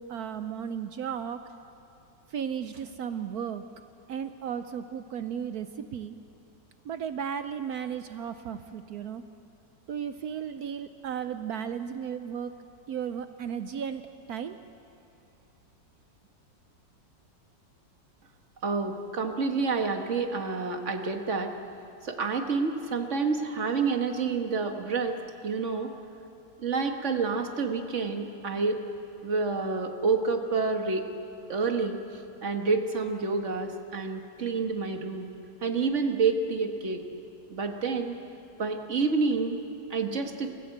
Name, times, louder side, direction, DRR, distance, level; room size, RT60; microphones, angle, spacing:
voice 1, 0.0-1.4 2.3-3.6 4.1-6.2 6.8-9.2 9.9-12.5 12.9-14.0 14.3-14.6, right 8 dB, 65° right, 10 dB, 1.0 m, -34 dB
voice 2, 18.6-21.5 22.0-25.2 25.4-25.9 26.6-28.8 29.2-31.1 31.5-32.0 32.4-35.3 35.6-37.0 37.5-38.2 38.6-39.6 39.9-40.5, right 4 dB, 45° right, 4 dB, 1.6 m, -28 dB
28.5 x 14.5 x 7.9 m, 2.8 s
omnidirectional pair, 2.0 m